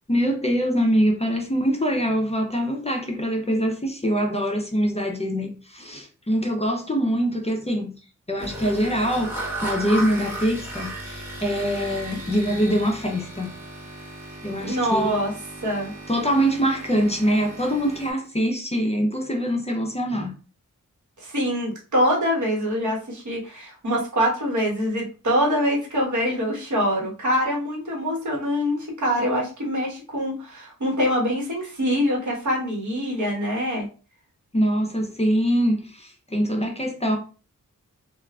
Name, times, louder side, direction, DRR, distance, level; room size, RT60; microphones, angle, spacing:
voice 1, 0.1-7.9 8.3-13.5 14.4-15.1 16.1-20.3 34.5-37.2, equal, 20° left, 0.5 m, -24 dB
sound 1, 8.4-18.1, right 1 dB, 5° right, 1.0 m, -36 dB
voice 2, 14.6-15.3 15.6-15.9 21.2-33.9, equal, 65° right, 1.2 m, -24 dB
3.4 x 2.4 x 2.3 m
wide cardioid pair, 95°, 32 cm